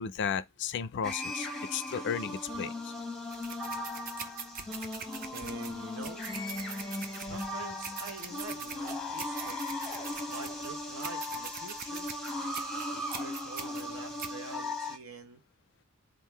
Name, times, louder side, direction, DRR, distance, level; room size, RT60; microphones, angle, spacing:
voice 1, 0.0-2.9, left 7 dB, 55° left, 0.4 m, -34 dB
sound 1, 1.0-15.0, left 1 dB, ahead, 0.8 m, -38 dB
sound 2, 3.3-14.4, right 6 dB, 40° right, 0.5 m, -43 dB
voice 2, 5.3-6.3 7.2-9.8 10.3-12.1 12.9-15.4, right 3 dB, 70° right, 1.0 m, -46 dB
3.7 x 2.5 x 4.5 m
head